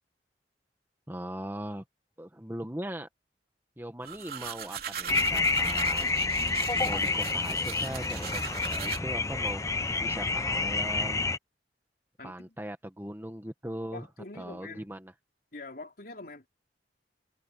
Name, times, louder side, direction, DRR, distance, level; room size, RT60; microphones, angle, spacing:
voice 1, 1.1-1.8 2.2-3.1 3.8-6.1 6.8-11.3 12.2-14.1 14.4-15.1, right 1 dB, 10° right, 1.5 m, -39 dB
sound 1, 4.0-9.0, right 7 dB, 55° right, 3.6 m, -39 dB
sound 2, 5.1-11.4, left 3 dB, 15° left, 0.6 m, -29 dB
voice 2, 12.2-12.6 13.9-14.9 15.5-16.5, left 2 dB, 55° left, 4.0 m, -44 dB
head